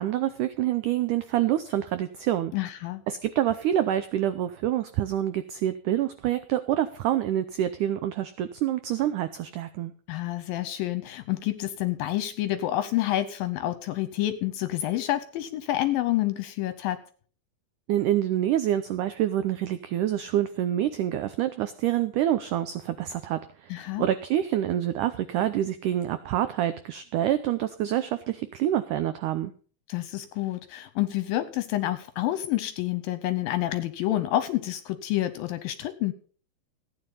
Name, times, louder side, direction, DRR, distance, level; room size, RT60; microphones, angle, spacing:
voice 1, 0.0-2.5 3.1-9.9 17.9-29.5, right 12 dB, 90° right, 11 dB, 1.7 m, -27 dB
voice 2, 2.5-3.0 10.1-17.0 23.7-24.1 29.9-36.1, left 14 dB, 80° left, 11 dB, 2.3 m, -28 dB
15.0 x 9.4 x 5.5 m, 0.43 s
omnidirectional pair, 4.5 m